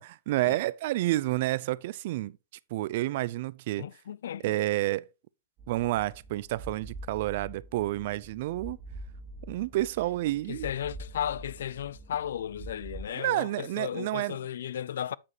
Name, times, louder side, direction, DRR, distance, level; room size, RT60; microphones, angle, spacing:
voice 1, 0.0-2.4 2.7-3.9 4.4-5.1 5.7-8.8 9.5-10.7 13.1-14.4, right 16 dB, 55° right, 0.4 m, -29 dB
voice 2, 3.8-4.6 10.5-15.2, left 10 dB, 75° left, 0.3 m, -35 dB
sound 1, 5.6-13.0, right 1 dB, 25° right, 2.5 m, -45 dB
8.5 x 7.3 x 2.9 m
hypercardioid pair, 140°, 0 cm